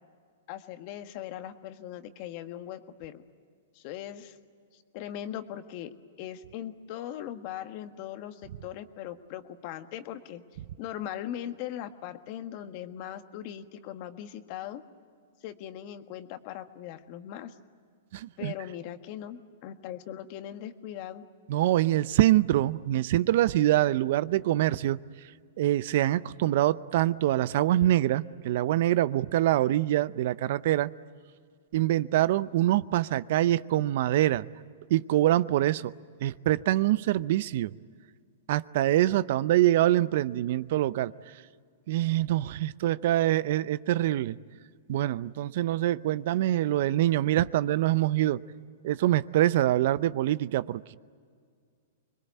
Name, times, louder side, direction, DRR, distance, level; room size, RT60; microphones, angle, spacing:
voice 1, 0.5-3.2 3.7-4.4 4.7-10.4 10.8-14.8 15.4-17.5 18.4-21.3, left 11 dB, 45° left, 9 dB, 1.6 m, -40 dB
voice 2, 18.1-18.5 21.5-25.0 25.6-30.9 31.7-34.5 34.9-35.9 36.2-37.7 38.5-41.1 41.9-44.4 44.9-48.4 48.8-51.0, right 14 dB, 60° right, 18 dB, 0.6 m, -25 dB
25.0 x 22.0 x 9.4 m, 2.1 s
hypercardioid pair, 125°, 0 cm